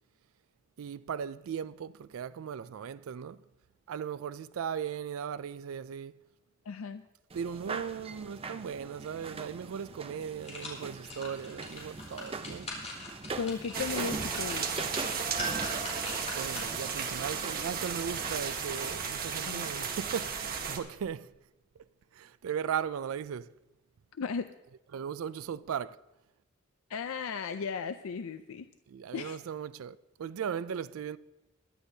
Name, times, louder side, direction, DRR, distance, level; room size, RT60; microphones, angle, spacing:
voice 1, 0.8-3.4 3.9-6.2 7.3-12.7 16.3-21.3 22.1-23.5 24.9-26.0 28.9-31.2, right 7 dB, 90° right, 0.4 m, -37 dB
voice 2, 6.7-7.0 13.3-14.9 19.5-19.7 24.2-24.5 26.9-28.7 29.1-29.4, left 5 dB, 90° left, 0.5 m, -36 dB
sound 1, 7.3-18.9, right 4 dB, 30° right, 0.6 m, -42 dB
sound 2, 10.1-17.0 17.4-17.5, left 2 dB, 35° left, 4.3 m, -44 dB
sound 3, 13.7-20.8, right 6 dB, 45° right, 1.3 m, -34 dB
22.0 x 11.5 x 2.7 m
head